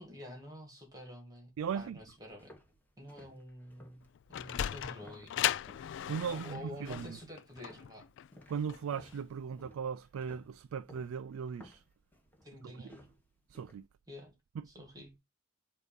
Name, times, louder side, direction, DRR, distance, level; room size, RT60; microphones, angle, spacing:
voice 1, 0.0-1.5 1.7-2.5 3.0-4.0 4.3-5.4 6.3-8.0 12.4-13.1 14.1-14.3 14.7-15.1, left 1 dB, 20° right, 1.8 m, -48 dB
sound 1, 1.6-5.9 6.3-6.7 7.0-13.7, left 1 dB, 10° left, 1.3 m, -59 dB
voice 2, 1.6-2.0 6.1-7.2 8.5-11.8 12.6-12.8 13.5-13.9 14.5-14.7, right 7 dB, 85° right, 0.3 m, -38 dB
Sliding door, 4.0-9.2, left 11 dB, 60° left, 0.3 m, -37 dB
8.1 x 2.8 x 5.2 m
head